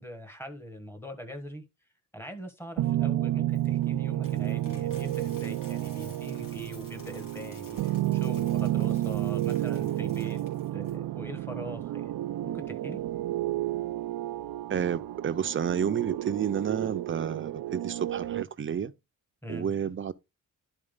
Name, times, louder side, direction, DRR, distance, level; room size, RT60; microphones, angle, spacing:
voice 1, 0.0-1.7 2.1-10.4 10.7-12.1 12.4-13.0 19.4-19.7, equal, 5° left, 1.3 m, -42 dB
sound 1, 2.8-18.4, right 14 dB, 80° right, 0.6 m, -31 dB
Coin (dropping), 3.5-10.9, left 4 dB, 75° left, 3.4 m, -54 dB
voice 2, 14.7-18.9 19.5-20.1, right 8 dB, 35° right, 0.6 m, -30 dB
11.0 x 4.2 x 3.8 m
wide cardioid pair, 155°, 34 cm